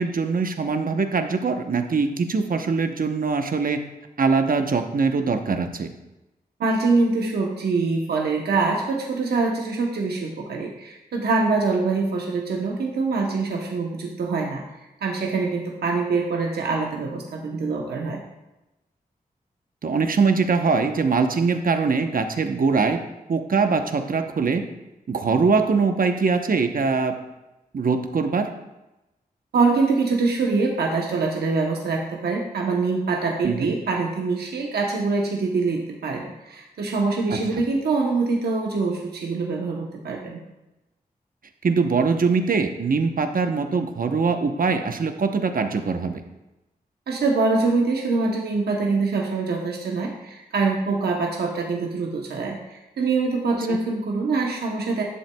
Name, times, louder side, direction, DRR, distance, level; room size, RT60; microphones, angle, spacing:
voice 1, 0.0-3.8 4.2-5.9 19.8-23.0 23.3-24.6 25.1-27.1 27.7-28.5 33.4-33.7 37.3-37.4 41.6-46.2 53.7-53.8, right 4 dB, 60° right, 6 dB, 0.9 m, -22 dB
voice 2, 6.6-14.6 15.0-18.2 29.5-40.4 47.1-55.0, right 3 dB, 90° right, 0 dB, 0.9 m, -24 dB
11.0 x 7.4 x 2.3 m, 0.99 s
cardioid pair, 45°, 16 cm